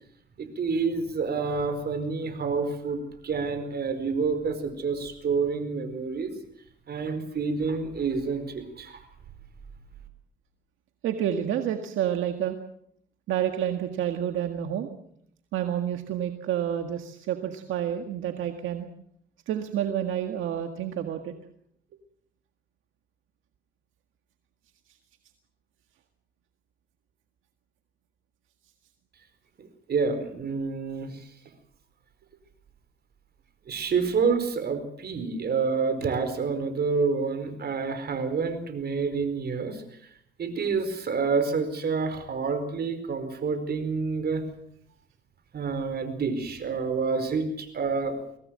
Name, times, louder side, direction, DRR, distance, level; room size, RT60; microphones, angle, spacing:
voice 1, 0.4-6.3 6.9-9.0 29.6-31.3 33.7-39.8 40.4-44.4 45.5-48.2, right 5 dB, 55° right, 10 dB, 4.7 m, -28 dB
voice 2, 11.0-12.6 13.3-14.9 15.5-18.9 19.5-21.3, right 10 dB, 85° right, 6 dB, 1.8 m, -29 dB
23.5 x 17.5 x 7.7 m, 0.69 s
cardioid pair, 90°, 20 cm